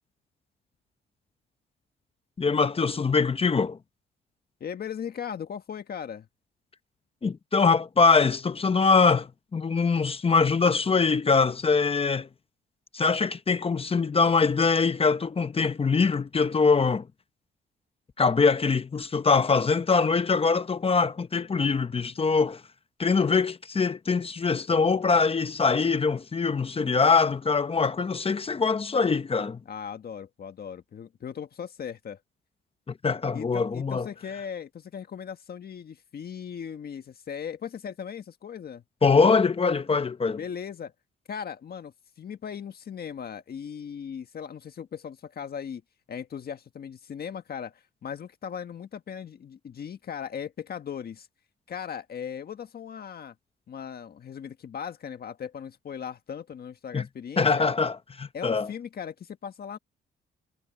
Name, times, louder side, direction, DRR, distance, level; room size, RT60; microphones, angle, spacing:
voice 1, 2.4-3.8 7.2-12.3 12.9-17.1 18.2-22.6 23.0-29.6 32.9-34.1 39.0-40.4 56.9-57.0 57.4-58.7, left 4 dB, 30° left, 1.0 m, -23 dB
voice 2, 4.6-6.3 29.7-32.2 33.3-38.8 40.3-40.9 41.3-45.8 46.1-51.3 51.7-53.3 53.7-57.7 58.3-59.8, left 7 dB, 50° left, 1.7 m, -38 dB
cardioid pair, 90°, 20 cm